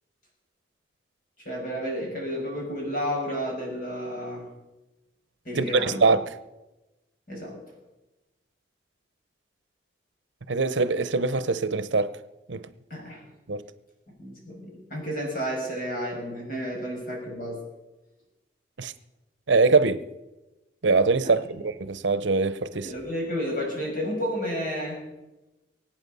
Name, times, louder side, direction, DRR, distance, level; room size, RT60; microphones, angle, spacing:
voice 1, 1.4-4.4 5.4-6.0 7.3-7.6 12.9-13.2 14.2-17.6 22.8-25.0, equal, 45° left, 6.2 m, -31 dB
voice 2, 5.5-6.4 10.5-12.1 12.5-12.6 13.5-13.6 18.8-18.9 19.5-20.0 20.8-22.9, right 4 dB, 80° right, 0.8 m, -23 dB
24.0 x 8.9 x 5.5 m
head